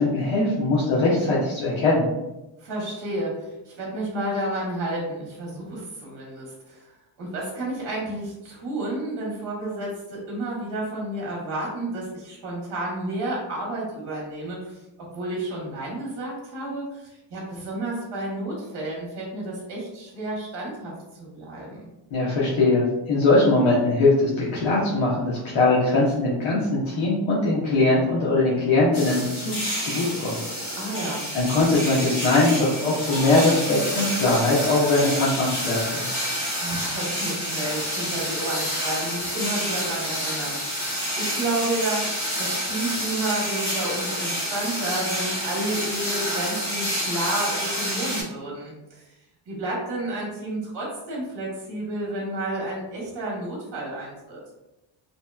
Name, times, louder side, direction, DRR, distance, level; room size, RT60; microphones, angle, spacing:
voice 1, 0.0-2.0 22.1-30.8 31.3-36.0, left 2 dB, 70° left, -7 dB, 0.7 m, -21 dB
voice 2, 2.6-6.9 7.2-14.8 15.1-21.8 30.8-31.3 36.6-42.1 42.4-49.1 49.5-54.4, right 1 dB, 55° right, -3 dB, 0.9 m, -31 dB
sound 1, 28.9-48.2, equal, 45° left, 0.9 m, -29 dB
2.8 x 2.1 x 2.2 m, 0.96 s
wide cardioid pair, 160°, 49 cm